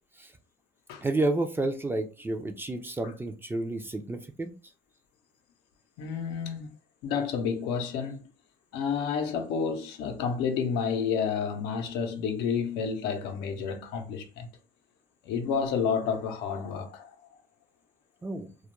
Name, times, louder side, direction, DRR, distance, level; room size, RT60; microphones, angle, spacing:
voice 1, 1.0-4.5 18.2-18.5, right 2 dB, 15° right, 0.3 m, -30 dB
voice 2, 6.0-6.7 7.0-8.3 8.7-14.5 15.2-17.1, left 6 dB, 90° left, 0.6 m, -30 dB
2.2 x 2.1 x 2.9 m
cardioid pair, 110°, 17 cm